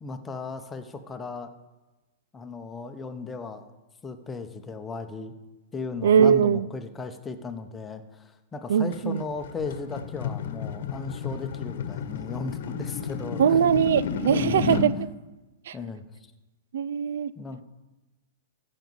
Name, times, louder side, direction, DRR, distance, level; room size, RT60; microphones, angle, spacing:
voice 1, 0.0-1.5 2.3-3.6 4.0-5.3 5.7-13.6 14.3-15.1 15.7-16.0 17.4-17.6, left 4 dB, 15° left, 1.0 m, -36 dB
voice 2, 6.0-6.7 8.7-9.2 13.4-14.9 15.7-15.8 16.7-17.3, right 8 dB, 70° right, 0.4 m, -21 dB
sound 1, 8.9-14.9, left 6 dB, 65° left, 1.1 m, -32 dB
14.0 x 5.3 x 7.1 m
hypercardioid pair, 145°, 0 cm